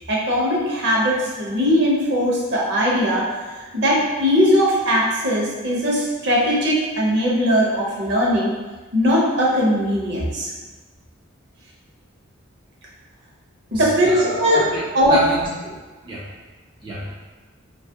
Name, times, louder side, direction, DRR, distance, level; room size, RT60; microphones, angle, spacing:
voice 1, 0.1-3.3 3.6-8.5 8.9-10.5 13.7-14.6 14.9-15.2, equal, 60° right, -4 dB, 0.7 m, -19 dB
voice 2, 13.7-15.8 16.0-16.2 16.8-17.2, right 1 dB, 25° right, -7 dB, 0.3 m, -28 dB
2.8 x 2.4 x 2.7 m, 1.3 s
head